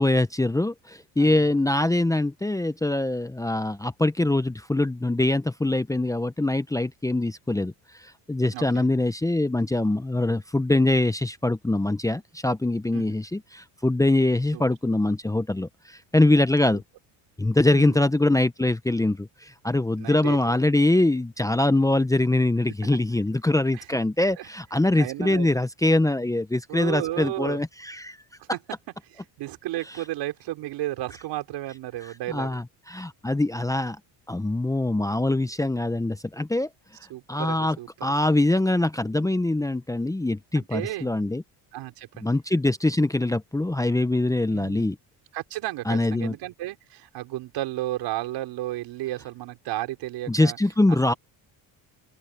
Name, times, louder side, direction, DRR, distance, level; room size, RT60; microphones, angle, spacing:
voice 1, 0.0-7.7 8.3-16.8 17.4-28.2 32.3-34.0 34.3-36.7 37.3-37.8 38.0-41.4 42.2-45.0 45.9-46.3 50.3-51.1, left 2 dB, 10° left, 0.9 m, -23 dB
voice 2, 1.2-1.6 8.5-8.8 12.9-13.1 14.5-14.6 16.7-16.8 17.7-18.0 20.0-20.5 23.7-23.8 24.4-24.5 25.0-25.5 26.7-27.6 28.5-28.6 29.1-32.6 37.1-38.1 40.5-41.1 41.7-42.3 44.5-44.9 45.3-50.6 50.9-51.2, right 15 dB, 75° right, 4.9 m, -33 dB
open air
cardioid pair, 95°, 42 cm